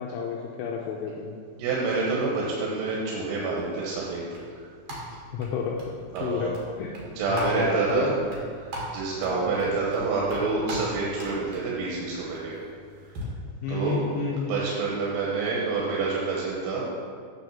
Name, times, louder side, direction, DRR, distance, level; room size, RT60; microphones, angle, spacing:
voice 1, 0.0-1.4 5.3-5.8 6.2-7.0 7.3-8.1 9.2-9.6 13.6-14.6, left 5 dB, 80° left, -1 dB, 2.7 m, -30 dB
voice 2, 1.6-4.2 6.1-6.5 7.0-8.1 8.9-12.5 13.7-14.0 14.3-16.8, right 4 dB, 85° right, -4 dB, 3.9 m, -27 dB
sound 1, 3.6-13.2, right 1 dB, 60° right, 1.8 m, -40 dB
9.1 x 4.6 x 7.1 m, 2.1 s
omnidirectional pair, 6.0 m